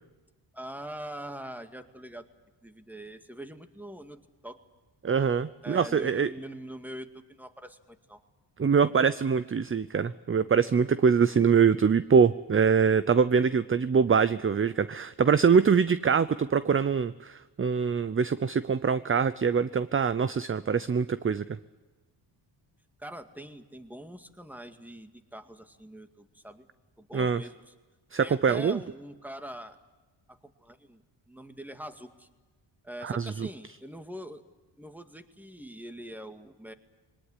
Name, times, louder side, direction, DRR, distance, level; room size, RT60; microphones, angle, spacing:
voice 1, 0.5-2.3 2.6-4.6 5.6-8.2 23.0-26.7 27.0-27.7 28.2-29.8 30.3-31.0 31.3-32.3 32.8-34.4 34.8-36.7, right 1 dB, 5° right, 8 dB, 2.1 m, -43 dB
voice 2, 5.0-6.3 8.6-21.4 27.1-27.4 28.1-28.8 33.0-33.5, right 6 dB, 25° right, 15 dB, 0.7 m, -24 dB
22.0 x 19.0 x 9.9 m, 1.2 s
cardioid pair, 75°, 47 cm